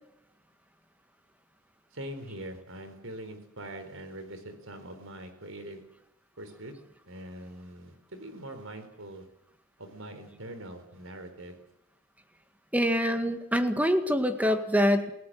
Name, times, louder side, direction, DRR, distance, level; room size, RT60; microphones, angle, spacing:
voice 1, 1.9-5.8 6.4-6.7 7.1-9.3 9.8-11.6, right 1 dB, 75° right, 8 dB, 4.3 m, -43 dB
voice 2, 12.7-15.1, equal, 10° right, 7 dB, 1.8 m, -25 dB
28.0 x 17.5 x 7.9 m, 0.84 s
head